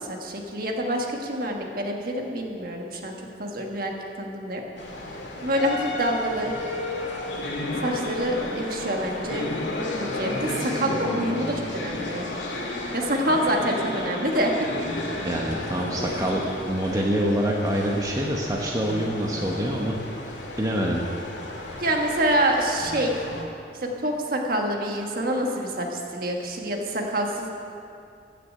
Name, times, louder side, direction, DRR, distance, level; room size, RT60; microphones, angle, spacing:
voice 1, 0.0-4.6 5.4-6.5 7.8-9.5 9.9-12.3 12.9-14.5 21.8-23.1 23.8-27.5, right 1 dB, 50° right, 1 dB, 1.5 m, -26 dB
sound 1, 4.8-23.4, left 2 dB, 80° left, 2.0 m, -32 dB
voice 2, 15.2-19.9 20.6-21.0, equal, 20° right, -2 dB, 0.9 m, -26 dB
14.5 x 6.8 x 7.6 m, 2.6 s
head